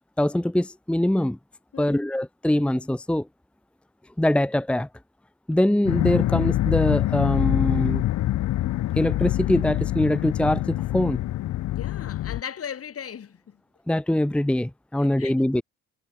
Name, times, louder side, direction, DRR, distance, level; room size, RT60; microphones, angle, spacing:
voice 1, 0.2-1.4 1.8-3.3 4.2-4.9 5.5-8.0 8.9-11.2 13.9-15.6, left 1 dB, 5° left, 1.0 m, -23 dB
sound 1, 5.9-12.4, left 14 dB, 70° left, 0.9 m, -25 dB
voice 2, 11.7-13.6 15.0-15.3, left 8 dB, 50° left, 2.3 m, -37 dB
cardioid pair, 90°, 30 cm